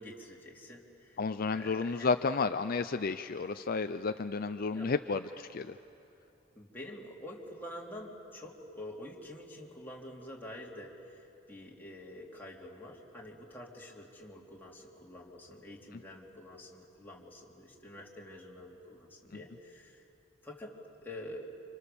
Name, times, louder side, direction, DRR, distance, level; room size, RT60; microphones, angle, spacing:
voice 1, 0.0-1.2 1.5-2.2 4.7-4.9 6.5-11.2 11.5-20.0 20.4-21.5, left 1 dB, 10° left, -3 dB, 3.4 m, -47 dB
voice 2, 1.2-5.7, left 4 dB, 50° left, 9 dB, 0.5 m, -32 dB
30.0 x 27.0 x 7.0 m, 2.8 s
head